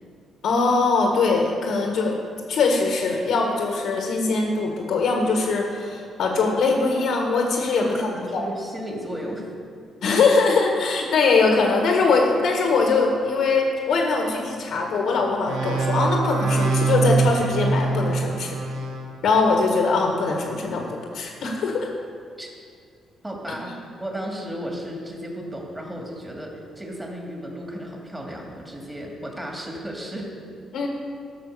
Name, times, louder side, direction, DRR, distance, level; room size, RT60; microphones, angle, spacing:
voice 1, 0.4-2.2 2.5-7.9 8.3-8.4 10.0-18.6 19.2-20.9 21.1-21.9 30.7-30.9, left 4 dB, 75° left, 1 dB, 1.6 m, -21 dB
voice 2, 7.7-9.5 22.4-22.5 23.2-30.3, equal, 10° right, -1 dB, 2.5 m, -34 dB
sound 1, 15.5-19.1, right 4 dB, 80° right, 1.3 m, -23 dB
14.5 x 6.1 x 6.8 m, 2.3 s
cardioid pair, 90°, 0 cm